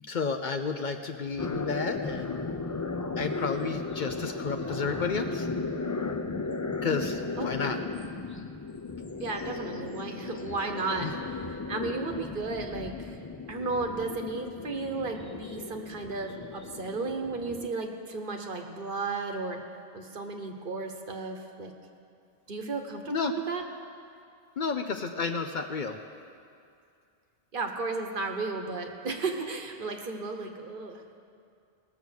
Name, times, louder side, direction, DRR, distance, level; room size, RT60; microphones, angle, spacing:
voice 1, 0.0-2.4 3.2-5.5 6.8-7.8 11.0-11.1 23.1-23.3 24.6-26.0, left 5 dB, 55° left, 6 dB, 0.7 m, -31 dB
sound 1, 1.4-17.7, left 3 dB, 30° left, 0.3 m, -36 dB
voice 2, 7.4-7.9 9.2-11.1 11.7-13.1 13.5-19.6 19.9-21.7 22.5-23.6 27.5-31.2, right 3 dB, 55° right, 4 dB, 1.2 m, -34 dB
18.5 x 6.9 x 6.4 m, 2.4 s
omnidirectional pair, 1.1 m